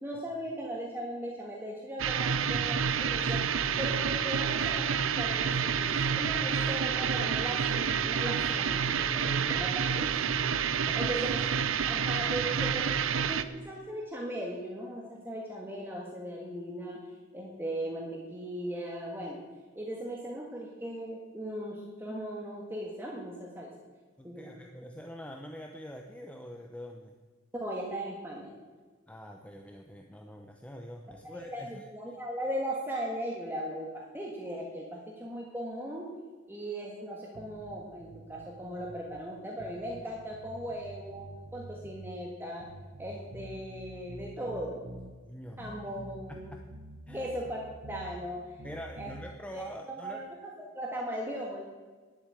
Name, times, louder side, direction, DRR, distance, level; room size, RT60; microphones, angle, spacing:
voice 1, 0.0-10.1 10.9-11.4 11.9-17.0 17.3-19.4 19.7-23.7 24.2-24.7 27.6-28.5 31.3-36.1 36.5-42.7 43.0-44.8 45.6-46.5 47.1-47.6 47.9-48.5 48.9-49.1 49.5-51.6, right 1 dB, 10° right, -2 dB, 1.5 m, -38 dB
sound 1, 2.0-13.4, right 7 dB, 70° right, 0.6 m, -29 dB
voice 2, 10.7-11.0 24.2-27.2 29.1-31.9 45.2-45.6 46.3-46.6 47.1-47.3 48.6-50.3, equal, 5° left, 3 dB, 0.7 m, -45 dB
sound 2, 37.3-39.1 39.6-42.2 42.6-45.2 45.6-48.1 48.6-49.2, right 1 dB, 50° right, 1.3 m, -47 dB
11.0 x 8.0 x 8.9 m, 1.4 s
head